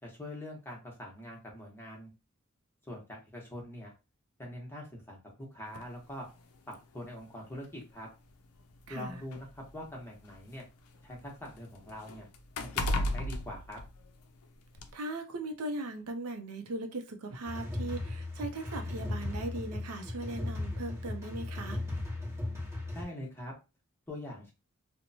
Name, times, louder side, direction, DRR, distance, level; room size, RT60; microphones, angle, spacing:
voice 1, 0.0-2.1 2.8-3.9 4.4-6.3 6.7-8.1 8.9-10.6 11.0-12.3 12.6-13.8 22.9-23.5 24.1-24.5, left 1 dB, 10° left, 0.9 m, -43 dB
sound 1, 5.7-5.9 7.0-7.1 7.5-7.6 8.6-10.6 10.9-14.4 14.8-14.9, left 1 dB, 85° left, 0.4 m, -35 dB
voice 2, 8.9-9.2 14.9-21.8, right 2 dB, 80° right, 0.5 m, -39 dB
sound 2, 17.4-23.0, left 2 dB, 10° right, 0.9 m, -37 dB
2.9 x 2.1 x 2.7 m
head